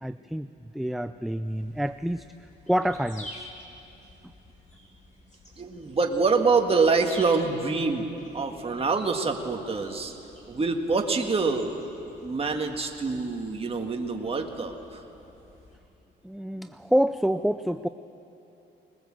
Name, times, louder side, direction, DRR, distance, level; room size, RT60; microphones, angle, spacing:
voice 1, 0.0-2.2 2.7-3.5 16.2-17.9, equal, ahead, 11 dB, 0.4 m, -27 dB
sound 1, 1.4-15.8, left 1 dB, 40° left, 5.7 m, -50 dB
voice 2, 5.6-8.1 8.3-10.1 10.5-11.8 12.2-15.0, right 4 dB, 30° right, 3 dB, 1.9 m, -25 dB
21.0 x 20.5 x 7.7 m, 2.9 s
cardioid pair, 90°, 20 cm